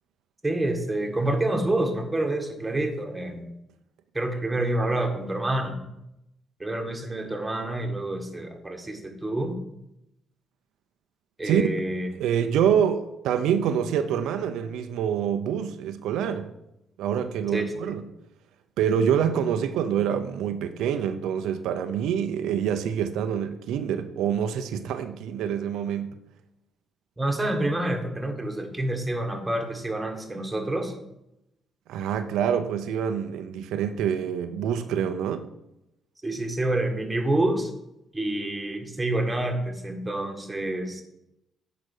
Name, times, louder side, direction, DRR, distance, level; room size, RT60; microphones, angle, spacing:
voice 1, 0.4-3.5 4.1-5.8 6.6-9.6 11.4-12.1 17.5-18.0 27.2-30.9 36.2-37.7 38.1-41.0, right 1 dB, 10° right, 1.7 m, -28 dB
voice 2, 12.1-16.5 17.0-18.1 18.8-26.2 31.9-35.5, right 8 dB, 85° right, 0.6 m, -26 dB
8.8 x 5.1 x 6.5 m
cardioid pair, 90°, 0 cm